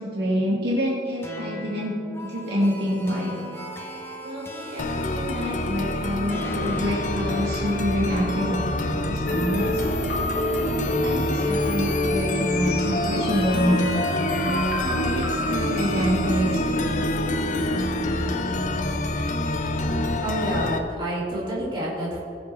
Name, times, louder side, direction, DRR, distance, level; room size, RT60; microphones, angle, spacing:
voice 1, 0.0-2.0 2.2-3.3 4.2-9.9 10.6-13.8 14.5-17.1, equal, 60° right, -4 dB, 2.0 m, -27 dB
sound 1, 1.2-13.7, equal, 15° left, 0.9 m, -38 dB
sound 2, 4.8-20.8, left 2 dB, 45° left, 0.7 m, -27 dB
sound 3, 9.3-18.6, equal, 65° left, 1.7 m, -28 dB
voice 2, 20.2-22.2, right 1 dB, 25° right, -7 dB, 2.9 m, -28 dB
20.0 x 7.0 x 3.5 m, 2.7 s
head